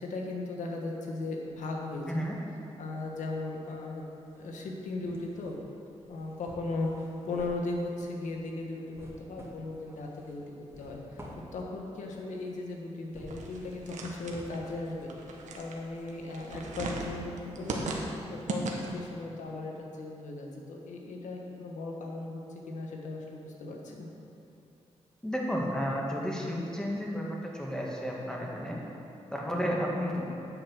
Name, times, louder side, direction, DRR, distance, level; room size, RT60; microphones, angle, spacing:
voice 1, 0.0-2.2 2.8-4.0 4.3-5.6 6.1-11.2 11.5-17.9 18.3-24.1, left 2 dB, 90° left, 0 dB, 1.5 m, -37 dB
sound 1, 1.6-2.6 2.9-16.6 17.0-17.1, equal, 20° right, 2.1 m, -52 dB
sound 2, 13.3-19.1, right 3 dB, 85° right, 1.3 m, -38 dB
voice 2, 25.2-28.8 29.3-30.2, equal, 5° left, -3 dB, 2.2 m, -32 dB
8.9 x 7.4 x 6.3 m, 2.8 s
cardioid pair, 75°, 12 cm